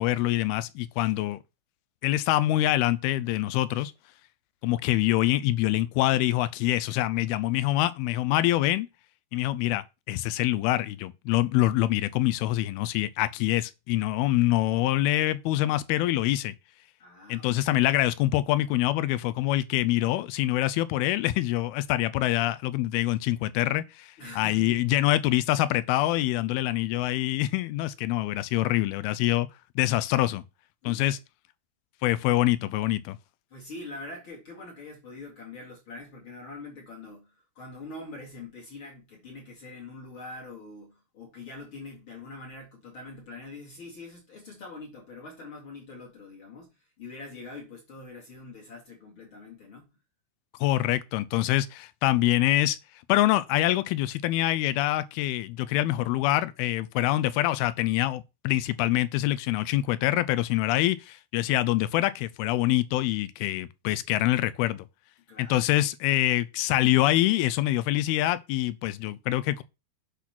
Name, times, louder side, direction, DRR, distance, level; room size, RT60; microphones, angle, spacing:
voice 1, 0.0-1.4 2.0-3.9 4.6-8.9 9.3-16.5 17.3-29.5 29.8-30.4 30.8-31.2 32.0-33.2 50.6-52.8 53.1-64.9 65.4-69.6, left 15 dB, 80° left, 2.4 m, -25 dB
voice 2, 17.0-17.5 24.2-24.8 30.8-31.2 33.5-46.7 47.0-49.9 65.3-65.7, left 2 dB, 40° left, 2.4 m, -44 dB
8.3 x 4.1 x 5.9 m
omnidirectional pair, 4.6 m